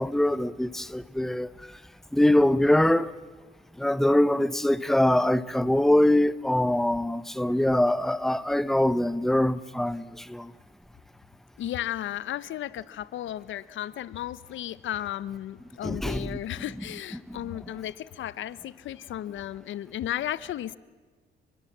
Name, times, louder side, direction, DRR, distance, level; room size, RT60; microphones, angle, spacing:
voice 1, 0.0-1.5 2.1-3.1 3.8-10.5 15.8-16.4, left 1 dB, ahead, 0.9 m, -23 dB
voice 2, 11.6-20.8, left 12 dB, 75° left, 0.9 m, -34 dB
29.5 x 21.5 x 7.4 m
cardioid pair, 90°, 20 cm